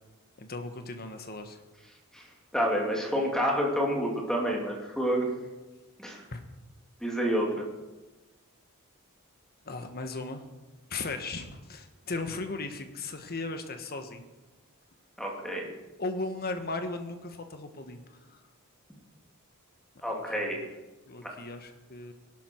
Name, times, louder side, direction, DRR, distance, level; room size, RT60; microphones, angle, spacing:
voice 1, 0.4-1.6 6.3-6.4 9.6-10.5 10.9-14.3 16.0-18.2 19.9-20.6 21.1-22.1, left 3 dB, 45° left, 7 dB, 1.4 m, -37 dB
voice 2, 2.5-5.3 6.0-6.2 7.0-7.6 15.2-15.7 20.0-20.6 21.2-21.3, equal, 5° left, -1 dB, 2.6 m, -28 dB
18.5 x 12.0 x 4.6 m, 1.2 s
head